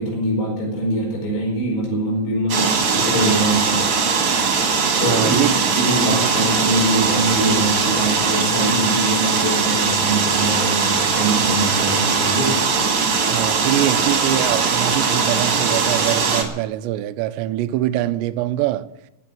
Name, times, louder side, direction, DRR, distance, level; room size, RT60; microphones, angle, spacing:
voice 1, 0.0-3.8 5.0-5.4 5.8-12.6, right 1 dB, 85° left, 6.9 m, -23 dB
sound 1, 2.5-16.4, right 5 dB, 40° right, 2.3 m, -20 dB
voice 2, 5.1-5.5 6.1-6.3 13.3-18.9, right 14 dB, 85° right, 2.9 m, -23 dB
17.0 x 7.7 x 9.1 m
omnidirectional pair, 5.0 m